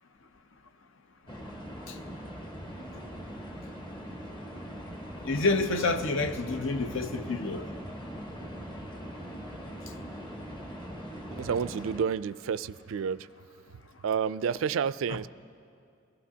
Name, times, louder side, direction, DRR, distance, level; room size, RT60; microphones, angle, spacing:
sound 1, 1.3-12.0, equal, 25° left, 1.1 m, -41 dB
voice 1, 5.2-7.7, left 3 dB, 65° left, 0.7 m, -28 dB
voice 2, 11.3-13.3 14.0-15.3, right 7 dB, 75° right, 0.3 m, -30 dB
23.5 x 15.0 x 2.8 m
head